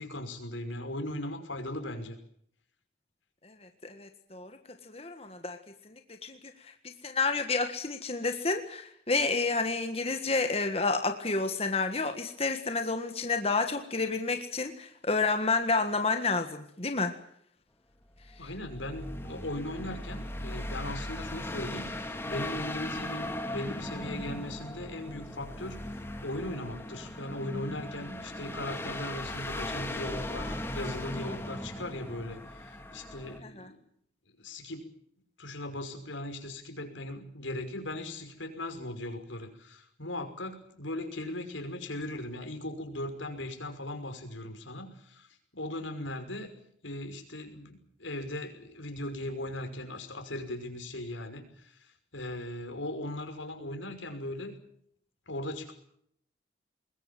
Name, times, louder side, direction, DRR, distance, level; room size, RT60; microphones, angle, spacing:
voice 1, 0.0-2.2 18.4-33.8 34.4-34.9 35.4-45.3 45.5-46.5 46.8-54.5 55.3-55.7, left 1 dB, 90° left, 6 dB, 5.7 m, -38 dB
voice 2, 3.4-4.6 4.9-5.6 5.9-6.4 7.0-17.2 33.4-33.7, left 3 dB, 30° left, 6 dB, 1.6 m, -30 dB
sound 1, 18.2-33.4, left 1 dB, 15° left, 2.3 m, -38 dB
25.0 x 21.0 x 7.6 m, 0.68 s
head